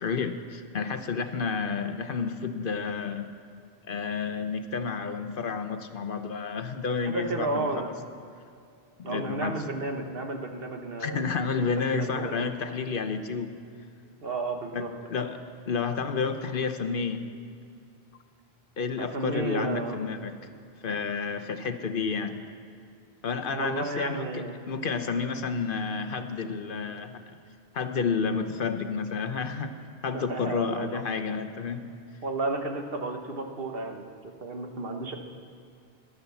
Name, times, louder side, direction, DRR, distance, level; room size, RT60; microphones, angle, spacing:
voice 1, 0.0-3.3 3.9-7.8 9.0-9.6 11.0-13.5 14.7-15.4 15.7-17.3 18.8-20.4 20.8-22.4 23.2-27.4 27.7-29.7 30.0-31.9, left 5 dB, 60° left, 9 dB, 0.9 m, -30 dB
voice 2, 7.0-7.9 9.0-11.7 11.9-12.4 14.2-14.9 19.0-20.0 23.5-24.5 30.1-31.0 32.2-35.2, right 3 dB, 65° right, 4 dB, 1.4 m, -32 dB
14.5 x 11.0 x 7.0 m, 2.4 s
omnidirectional pair, 1.1 m